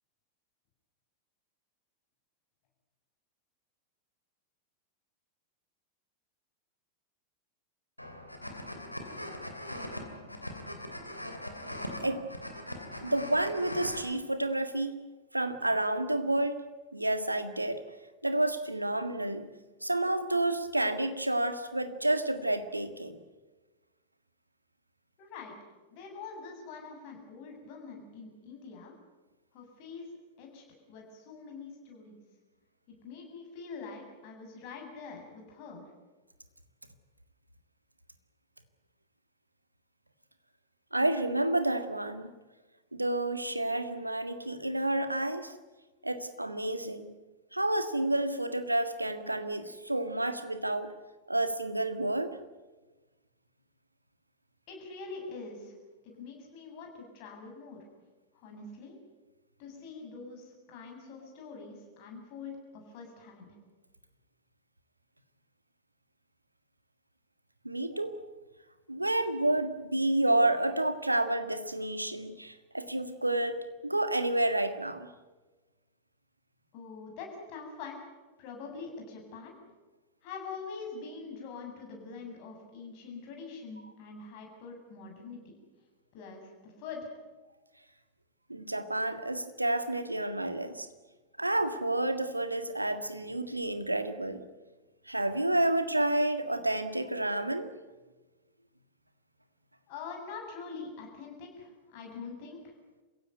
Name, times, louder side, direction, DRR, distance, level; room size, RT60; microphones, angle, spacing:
sound 1, 8.0-14.0, left 1 dB, 85° left, 2.8 m, -41 dB
voice 1, 13.0-14.9 15.3-16.6 16.9-17.8 18.2-19.5 19.8-23.2 40.9-42.3 42.9-45.5 46.0-47.1 47.5-50.9 51.3-52.3 67.6-68.3 68.9-73.6 73.8-75.1 88.5-90.9 91.4-94.4 95.1-97.7, right 1 dB, 85° right, 10 dB, 1.7 m, -30 dB
voice 2, 25.2-25.5 25.9-28.9 29.5-30.1 30.4-32.2 32.9-35.8 54.7-55.7 56.0-57.8 58.3-59.0 59.6-63.5 76.7-78.0 78.4-79.5 80.2-85.6 86.1-87.1 99.9-102.7, left 4 dB, 45° left, 1 dB, 7.6 m, -44 dB
28.0 x 16.5 x 9.3 m, 1.2 s
figure-of-eight pair, 90°, 0 cm